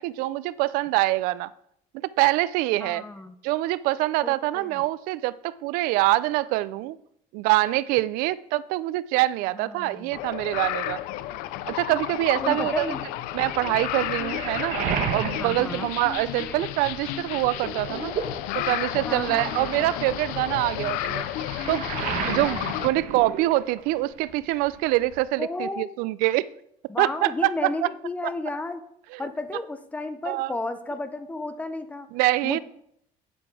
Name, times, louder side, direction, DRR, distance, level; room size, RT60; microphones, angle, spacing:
voice 1, 0.0-1.5 2.2-3.0 3.4-7.0 7.3-11.0 11.7-12.9 13.3-14.8 15.1-18.1 18.5-21.2 21.7-21.8 22.2-26.5 27.0-27.9 29.1-29.2 30.3-30.5 32.1-32.6, right 17 dB, 85° right, 19 dB, 0.4 m, -25 dB
voice 2, 2.8-3.3 4.2-4.8 9.6-10.2 12.4-13.0 15.4-15.9 16.4-16.7 19.1-19.9 22.3-22.8 25.4-26.0 26.9-28.8 29.2-32.1 32.4-32.6, left 2 dB, 10° left, 10 dB, 0.6 m, -33 dB
sound 1, 10.1-22.9, left 13 dB, 90° left, 0.5 m, -32 dB
Waves surf, 13.5-16.7 17.1-24.0 24.3-25.2, right 8 dB, 60° right, 1.1 m, -34 dB
9.6 x 7.7 x 4.8 m, 0.73 s
cardioid pair, 165°, 14 cm